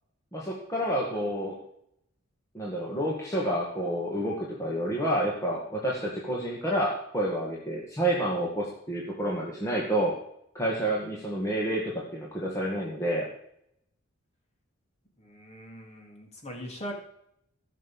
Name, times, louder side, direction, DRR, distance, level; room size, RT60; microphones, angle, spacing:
voice 1, 0.3-1.6 2.5-10.1 10.5-13.3, right 1 dB, 15° left, -4 dB, 2.1 m, -29 dB
voice 2, 15.2-16.9, equal, 30° left, 0 dB, 3.3 m, -41 dB
15.5 x 6.7 x 7.3 m, 0.73 s
head